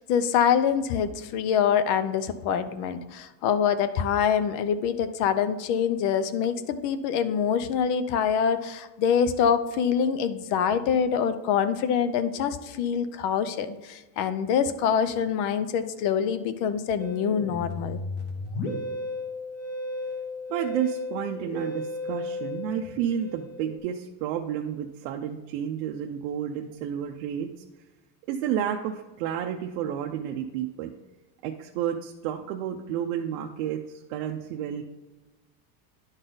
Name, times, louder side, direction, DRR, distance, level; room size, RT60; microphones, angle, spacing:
voice 1, 0.0-18.0, left 7 dB, 50° left, 12 dB, 0.6 m, -25 dB
Musical instrument, 17.0-23.8, left 2 dB, 25° left, 1.3 m, -34 dB
voice 2, 20.5-27.5 28.3-30.9 31.4-34.8, right 9 dB, 75° right, 2 dB, 0.7 m, -31 dB
10.5 x 4.0 x 3.9 m, 1.1 s
cardioid pair, 170°, 41 cm